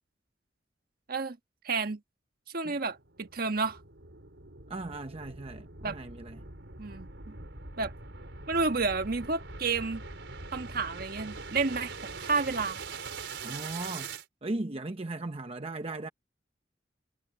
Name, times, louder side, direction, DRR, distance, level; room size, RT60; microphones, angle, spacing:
voice 1, 1.6-2.0 2.5-3.8 5.8-6.0 6.8-7.3 7.8-7.9 8.5-10.0 10.5-12.8, right 4 dB, 55° right, 1.4 m, -31 dB
sound 1, 2.7-14.2, right 4 dB, 85° right, 4.7 m, -43 dB
voice 2, 4.7-6.4 13.4-14.1 14.4-16.1, right 2 dB, 35° right, 0.8 m, -37 dB
head